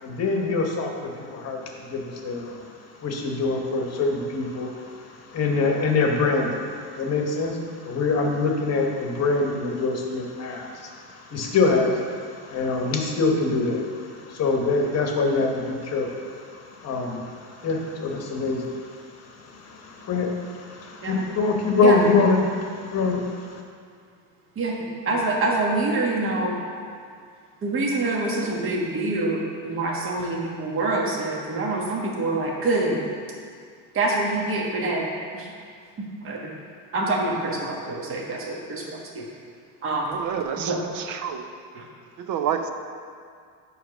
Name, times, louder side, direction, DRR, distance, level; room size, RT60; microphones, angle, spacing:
voice 1, 0.0-2.7 3.0-23.6, left 3 dB, 35° left, 2 dB, 1.1 m, -25 dB
voice 2, 25.1-26.5 27.6-33.0 33.9-35.0 35.3-35.5 36.2-36.4 36.9-39.2 39.8-40.1 40.7-40.8 41.7-41.8, right 2 dB, 30° right, -2 dB, 1.3 m, -25 dB
voice 3, 40.1-41.5 42.2-42.7, right 8 dB, 45° right, 7 dB, 0.6 m, -29 dB
10.0 x 3.4 x 6.1 m, 2.1 s
cardioid pair, 135°, 44 cm